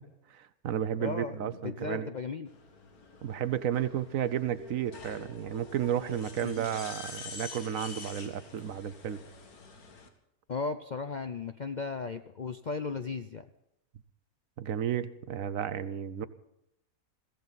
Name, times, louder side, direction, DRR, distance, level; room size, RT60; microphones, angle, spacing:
voice 1, 0.3-2.1 3.2-9.2 14.6-16.3, right 9 dB, 70° right, 14 dB, 1.2 m, -32 dB
voice 2, 1.0-2.5 6.4-6.6 10.5-13.4, left 4 dB, 50° left, 8 dB, 0.5 m, -36 dB
sound 1, 2.5-10.1, left 4 dB, 80° left, 2.1 m, -47 dB
sound 2, 4.6-8.6, left 2 dB, 50° right, 1.4 m, -55 dB
22.0 x 15.5 x 4.0 m, 0.83 s
omnidirectional pair, 1.5 m